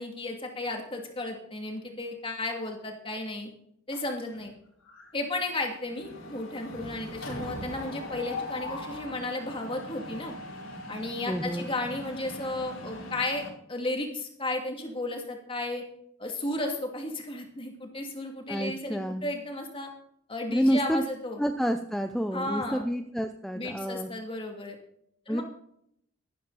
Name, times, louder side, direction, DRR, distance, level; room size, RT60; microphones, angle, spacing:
voice 1, 0.0-3.5 3.9-4.5 5.1-10.3 10.9-15.8 16.2-19.9 20.3-21.4 22.3-22.8 23.5-24.8 25.3-25.4, left 2 dB, 25° left, 2 dB, 2.6 m, -34 dB
Mechanisms, 3.9-4.5 4.8-5.1 5.3-13.5, left 1 dB, 80° left, 5.2 m, -40 dB
voice 2, 11.3-11.7 18.5-19.2 20.5-21.0 21.4-24.1 25.3-25.4, equal, ahead, 6 dB, 0.6 m, -28 dB
14.0 x 12.5 x 4.1 m, 0.70 s
head